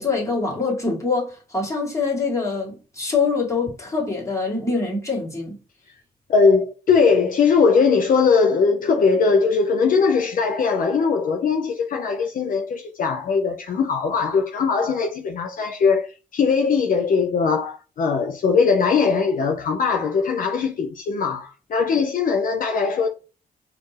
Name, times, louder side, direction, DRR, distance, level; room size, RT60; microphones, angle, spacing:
voice 1, 0.0-5.6, left 4 dB, 20° left, 1.8 m, -24 dB
voice 2, 6.3-23.1, left 5 dB, 60° left, 0.5 m, -20 dB
4.3 x 2.6 x 3.2 m
cardioid pair, 90°, 16 cm